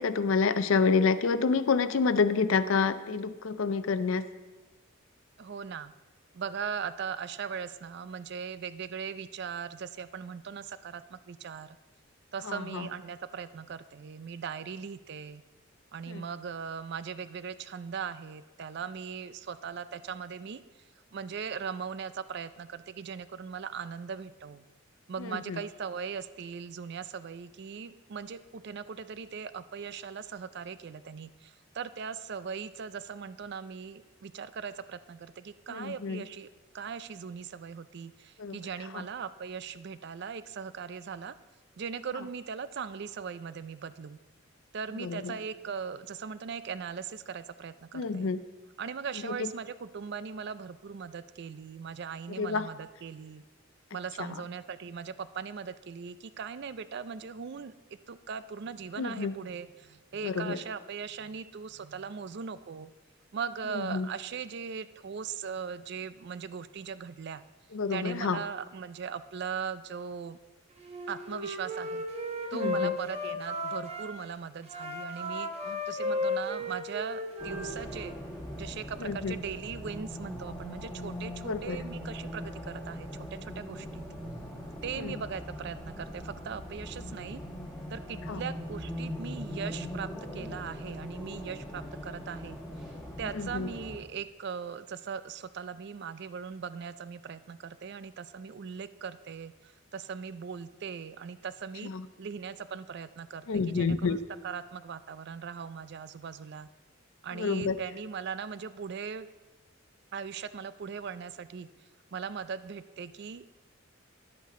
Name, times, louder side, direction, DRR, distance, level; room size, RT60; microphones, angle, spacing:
voice 1, 0.0-4.3 12.4-12.9 16.1-16.2 25.2-25.6 35.7-36.2 38.4-38.6 38.9-39.1 45.0-45.3 47.9-48.4 49.2-49.5 52.4-52.7 54.2-54.3 59.0-59.3 60.2-60.6 63.7-64.1 67.7-68.4 72.5-72.9 75.6-75.8 79.0-79.3 81.4-81.8 85.0-85.2 88.3-88.4 93.3-93.7 101.8-102.1 103.5-104.2 107.3-107.8, left 5 dB, 75° left, 13 dB, 0.5 m, -29 dB
voice 2, 5.4-5.9 6.3-11.8 12.3-15.4 15.9-20.6 21.1-24.7 25.1-36.5 36.7-41.3 41.8-44.2 44.7-48.3 48.8-53.4 53.9-57.7 58.1-62.9 63.3-67.4 67.9-70.4 71.1-72.0 72.5-75.5 75.9-78.2 78.6-84.0 84.8-87.4 87.9-92.6 93.2-101.9 102.2-104.2 104.4-106.7 107.2-109.3 110.1-111.7 112.1-113.5, right 6 dB, 55° right, 14 dB, 0.4 m, -39 dB
Wind instrument woodwind instrument, 70.8-74.1 74.6-78.2, left 2 dB, 30° right, 0.9 m, -34 dB
Race car auto racing, 77.4-94.0, equal, ahead, 2.7 m, -41 dB
10.5 x 8.4 x 3.7 m, 1.2 s
head